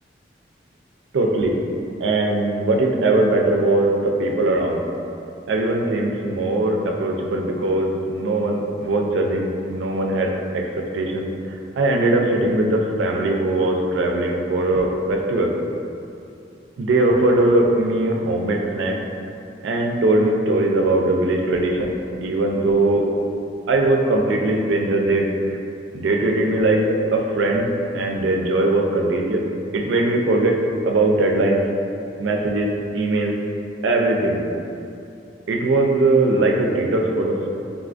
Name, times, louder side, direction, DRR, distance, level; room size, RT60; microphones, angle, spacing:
voice 1, 1.1-1.5 2.0-4.8 5.5-11.3 11.7-15.5 16.8-19.0 19.6-21.9 22.2-23.1 23.7-25.3 25.9-27.7 27.9-29.4 29.7-31.6 32.2-33.4 33.8-34.4 35.5-37.5, right 2 dB, 85° right, 1 dB, 0.3 m, -20 dB
3.6 x 2.4 x 2.3 m, 2.6 s
head